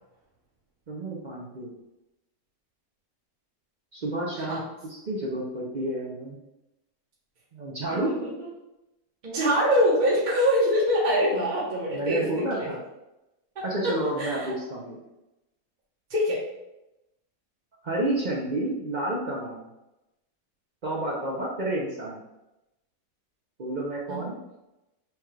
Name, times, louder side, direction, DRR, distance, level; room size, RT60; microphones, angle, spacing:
voice 1, 0.9-1.7 3.9-4.6 4.9-6.4 7.5-8.1 11.9-12.8 13.6-15.0 17.8-19.6 20.8-22.2 23.6-24.3, right 1 dB, 55° right, -3 dB, 0.5 m, -30 dB
voice 2, 7.9-8.3 9.2-12.7 13.5-14.5 16.1-16.4 24.1-24.3, equal, 35° right, -6 dB, 1.0 m, -24 dB
6.2 x 2.3 x 3.1 m, 0.93 s
omnidirectional pair, 1.6 m